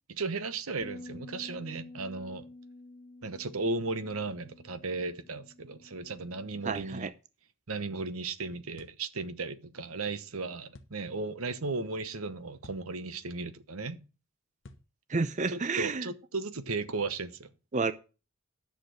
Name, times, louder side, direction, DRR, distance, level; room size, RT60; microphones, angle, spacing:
voice 1, 0.1-2.5 3.2-7.1 7.7-14.0 15.5-17.5, right 3 dB, 80° right, 1.0 m, -35 dB
Bass guitar, 0.8-7.1, left 2 dB, 30° left, 0.5 m, -50 dB
voice 2, 6.6-7.1 15.1-16.1 17.7-17.9, right 4 dB, 35° right, 0.5 m, -30 dB
sound 1, 6.7-7.0 8.8-9.0 10.7-11.0 12.6-12.9 14.6-14.9, left 2 dB, 60° left, 1.0 m, -52 dB
10.5 x 6.8 x 6.4 m
head